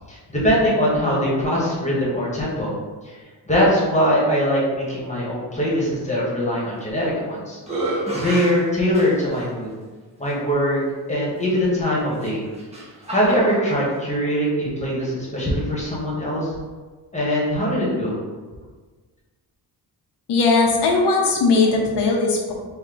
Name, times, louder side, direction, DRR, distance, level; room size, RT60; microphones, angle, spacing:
voice 1, 0.1-2.7 3.0-3.2 3.5-7.6 7.9-9.7 10.2-10.8 11.1-12.4 13.1-16.5 17.1-18.2, equal, 15° left, -6 dB, 1.5 m, -22 dB
sound 1, 6.8-7.2 7.6-9.5 10.2-10.3 12.1-13.8, right 1 dB, 15° right, 1.0 m, -30 dB
voice 2, 20.3-22.5, left 3 dB, 75° left, -1 dB, 0.8 m, -18 dB
4.4 x 2.9 x 3.9 m, 1.4 s
wide cardioid pair, 120°, 42 cm